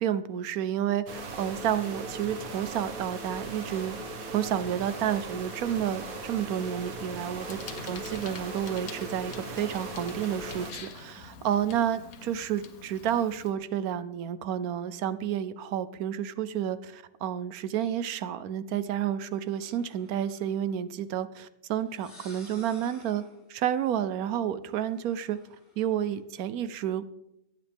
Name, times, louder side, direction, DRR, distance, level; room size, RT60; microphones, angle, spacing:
voice 1, 0.0-4.0 4.3-7.6 7.8-23.2 23.5-25.4 25.8-27.2, right 10 dB, 90° right, 14 dB, 1.2 m, -30 dB
sound 1, 1.1-10.7, right 2 dB, 70° right, 1.9 m, -39 dB
Bicycle, 7.4-13.5, left 6 dB, 75° left, 1.5 m, -46 dB
sound 2, 19.3-20.7 21.8-23.5 24.9-26.2, left 1 dB, 45° left, 5.4 m, -54 dB
24.5 x 8.7 x 3.5 m, 0.84 s
omnidirectional pair, 1.5 m